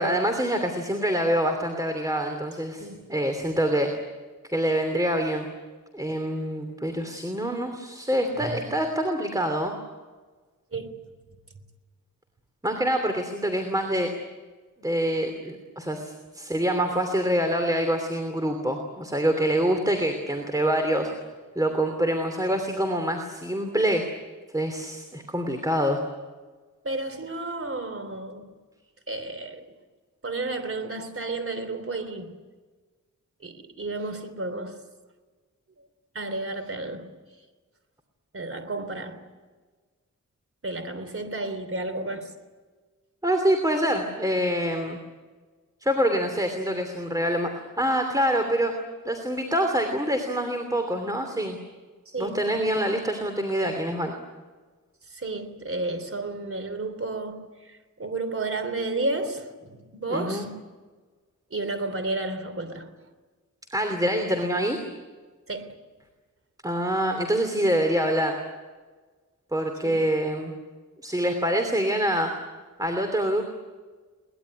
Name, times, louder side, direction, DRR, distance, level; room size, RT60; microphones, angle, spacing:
voice 1, 0.0-3.9 4.5-5.5 5.9-9.7 12.6-14.1 14.8-21.1 21.5-24.0 24.5-26.0 43.2-45.0 45.8-48.7 49.0-51.6 52.2-54.1 60.1-60.5 63.7-64.8 66.6-68.3 69.5-70.5 71.0-72.3 72.8-73.5, equal, 10° right, 2.9 m, -25 dB
voice 2, 2.7-3.1 8.4-8.6 10.7-10.9 26.8-28.6 29.1-29.8 30.2-32.4 33.4-34.8 35.8-35.9 36.1-37.1 38.3-39.2 40.6-42.3 52.0-52.5 55.1-60.6 61.5-62.9 65.5-65.8 69.8-70.0, right 2 dB, 45° right, 3.4 m, -32 dB
23.0 x 20.0 x 9.8 m
wide cardioid pair, 120°, 31 cm